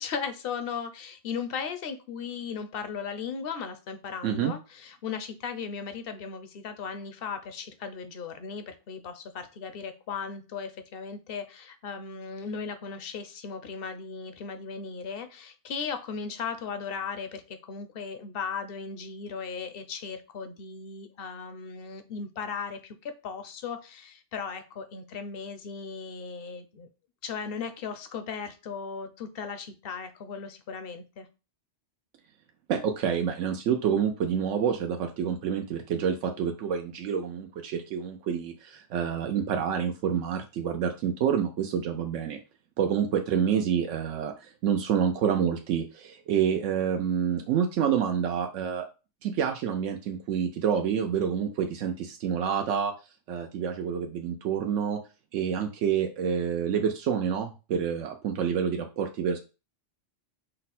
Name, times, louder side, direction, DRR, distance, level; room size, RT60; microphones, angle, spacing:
voice 1, 0.0-26.9 27.2-31.3, left 6 dB, 60° left, 9 dB, 0.7 m, -37 dB
voice 2, 4.2-4.5 32.7-42.4 42.8-48.8 49.2-52.9 53.3-55.0 55.3-59.4, right 8 dB, 80° right, 4 dB, 0.9 m, -28 dB
5.4 x 2.1 x 4.1 m, 0.31 s
omnidirectional pair, 1.2 m